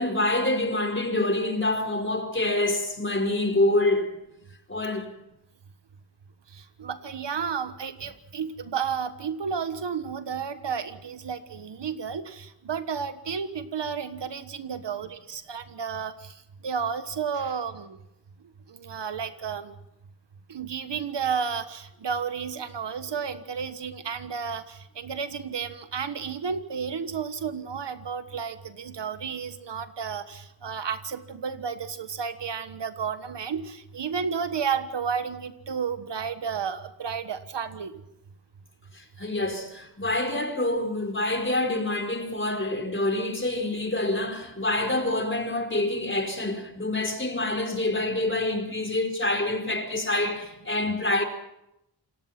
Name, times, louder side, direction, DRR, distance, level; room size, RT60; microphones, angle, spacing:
voice 1, 0.0-4.1 4.7-5.1 38.9-51.2, left 2 dB, 30° left, 4.9 m, -26 dB
voice 2, 6.5-16.3 16.6-18.0 18.7-19.7 20.5-37.9, right 6 dB, 80° right, 1.5 m, -32 dB
28.0 x 19.5 x 6.0 m
cardioid pair, 50°, 41 cm